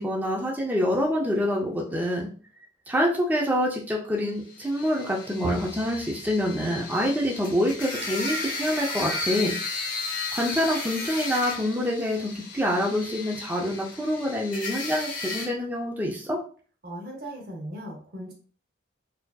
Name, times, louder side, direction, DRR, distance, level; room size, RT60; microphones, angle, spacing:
voice 1, 0.0-2.3 2.9-9.5 10.3-16.4, equal, 10° right, -2 dB, 0.5 m, -26 dB
sound 1, 4.5-15.5, left 3 dB, 45° left, 0.9 m, -34 dB
voice 2, 16.8-18.3, right 1 dB, 50° right, 1 dB, 0.7 m, -38 dB
4.1 x 2.8 x 2.3 m, 0.41 s
head